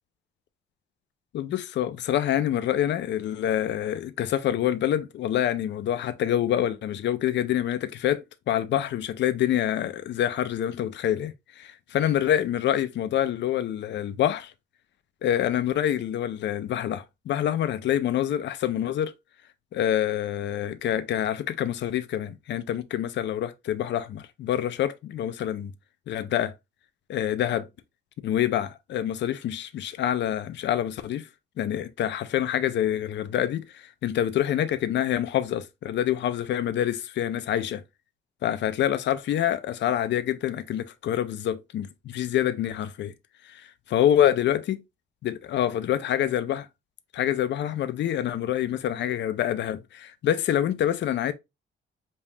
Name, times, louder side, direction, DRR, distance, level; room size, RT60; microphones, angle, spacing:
voice 1, 1.3-14.5 15.2-19.1 19.7-25.7 26.1-26.5 27.1-27.7 28.2-31.3 31.6-37.8 38.4-43.1 43.4-43.6 43.9-44.8 45.2-46.7 47.1-51.3, left 11 dB, 60° left, 0.4 m, -26 dB
5.3 x 2.3 x 2.7 m
cardioid pair, 130°, 20 cm